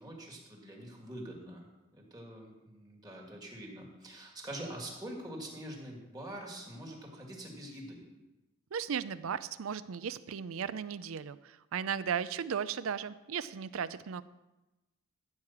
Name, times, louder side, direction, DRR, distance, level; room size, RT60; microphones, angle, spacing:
voice 1, 0.0-1.7 1.9-8.1, right 1 dB, 20° right, 0 dB, 2.0 m, -45 dB
voice 2, 8.7-14.2, right 7 dB, 75° right, 16 dB, 0.5 m, -36 dB
14.0 x 4.9 x 7.2 m, 1.1 s
head